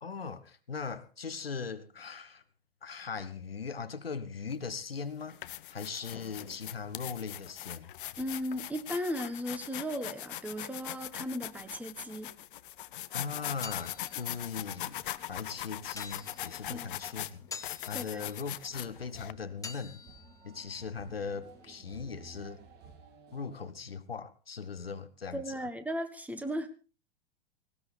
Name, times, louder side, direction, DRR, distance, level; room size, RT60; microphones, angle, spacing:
voice 1, 0.0-2.4 2.8-7.9 13.1-15.0 15.3-17.5 17.9-20.0 20.4-22.6 23.3-25.7, left 5 dB, 80° left, 1.0 m, -39 dB
sound 1, 4.5-4.7 5.2-19.3, left 13 dB, 60° left, 0.8 m, -41 dB
voice 2, 8.2-12.3 16.7-16.9 17.9-18.2 25.3-26.7, equal, 5° right, 1.4 m, -36 dB
sound 2, 13.2-21.8, left 5 dB, 10° left, 1.3 m, -50 dB
sound 3, 18.7-23.7, right 4 dB, 35° right, 2.4 m, -54 dB
18.5 x 17.5 x 3.4 m
figure-of-eight pair, 90°, 29 cm